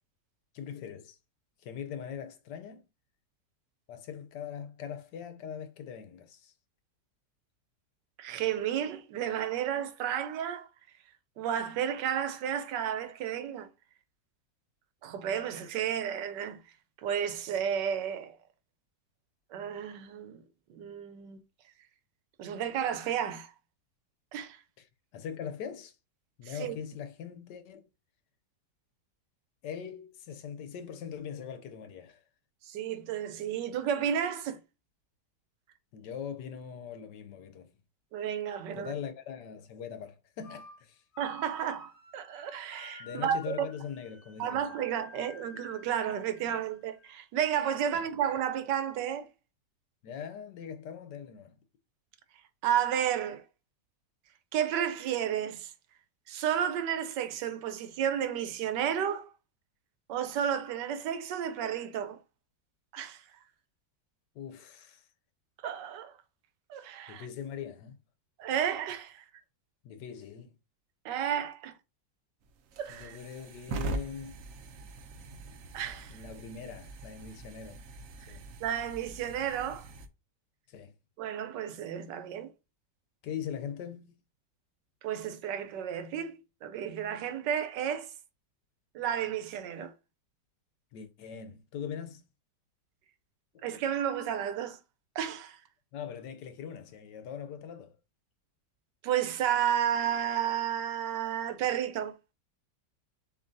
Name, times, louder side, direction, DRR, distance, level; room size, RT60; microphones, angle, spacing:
voice 1, 0.5-1.2 1.6-2.9 3.9-6.5 25.1-26.0 26.4-27.8 29.6-32.2 35.9-37.7 38.7-41.0 43.0-44.6 47.9-48.0 50.0-51.6 64.3-65.1 67.1-68.0 69.8-70.5 72.9-74.4 76.1-77.8 78.2-78.4 80.7-80.9 83.2-84.1 90.9-92.2 93.5-93.6 95.9-98.0, left 8 dB, 80° left, 1.3 m, -41 dB
voice 2, 8.2-10.7 11.4-13.7 15.0-16.6 17.0-18.4 19.5-20.4 20.7-21.4 22.4-23.5 24.3-24.6 26.5-26.7 32.6-34.6 38.1-38.9 41.2-43.7 44.4-49.3 52.6-53.4 54.5-55.7 56.3-59.3 60.1-62.2 62.9-63.2 65.6-66.2 66.7-67.2 68.4-69.2 71.0-71.7 72.8-73.2 75.7-76.2 78.6-79.9 81.2-82.5 85.0-88.1 88.9-89.9 93.6-94.8 95.1-95.6 99.0-102.1, right 9 dB, 80° right, 1.3 m, -32 dB
sound 1, 40.4-40.8 41.1-47.2, left 3 dB, 65° left, 1.7 m, -52 dB
sound 2, 72.4-80.1, right 2 dB, 65° right, 0.9 m, -42 dB
6.9 x 2.8 x 2.6 m
omnidirectional pair, 1.9 m